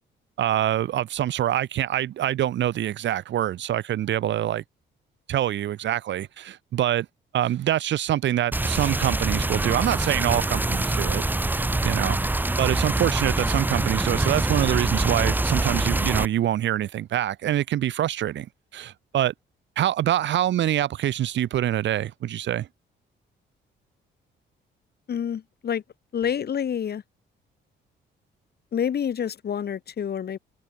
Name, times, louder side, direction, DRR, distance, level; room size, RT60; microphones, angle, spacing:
voice 1, 0.4-4.6 5.3-7.1 7.3-11.2 11.8-12.2 12.6-18.5 18.7-19.3 19.8-22.7, right 12 dB, 65° right, 1.0 m, -25 dB
sound 1, 8.5-16.3, right 2 dB, 10° right, 0.6 m, -25 dB
voice 2, 25.1-25.8 26.1-27.0 28.7-30.4, left 8 dB, 55° left, 2.6 m, -28 dB
cardioid pair, 90°, 20 cm